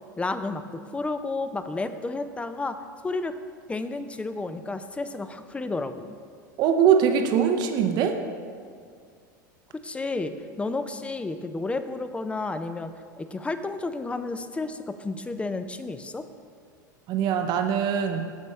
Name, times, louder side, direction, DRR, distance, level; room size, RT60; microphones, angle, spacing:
voice 1, 0.2-0.6 0.9-2.8 3.0-3.3 3.7-6.1 9.8-12.9 13.2-16.2, left 3 dB, 10° left, 10 dB, 0.5 m, -31 dB
voice 2, 6.6-8.2 17.1-18.3, right 8 dB, 40° right, 6 dB, 0.7 m, -22 dB
15.0 x 5.4 x 3.2 m, 2.2 s
figure-of-eight pair, 85°, 11 cm